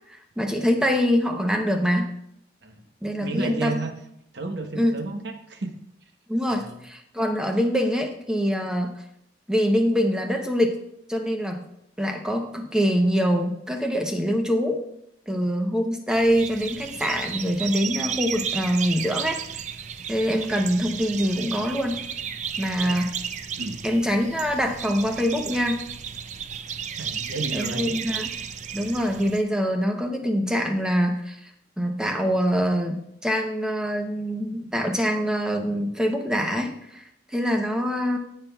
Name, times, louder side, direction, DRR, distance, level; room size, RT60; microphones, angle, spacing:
voice 1, 0.4-2.1 3.0-3.8 4.8-5.0 6.3-9.0 9.5-10.8 11.1-11.7 12.0-14.8 15.3-19.4 20.1-22.0 22.6-23.2 23.8-25.8 27.5-28.3 28.7-31.4 31.8-37.0 37.3-38.2, equal, 5° right, 3 dB, 0.7 m, -24 dB
voice 2, 3.2-3.9 4.3-5.7 6.5-6.7 22.8-23.0 23.6-23.8 27.0-28.0, right 3 dB, 60° right, 6 dB, 0.9 m, -32 dB
sound 1, 16.1-29.4, right 7 dB, 35° right, 0.4 m, -33 dB
16.0 x 5.7 x 2.3 m, 0.78 s
head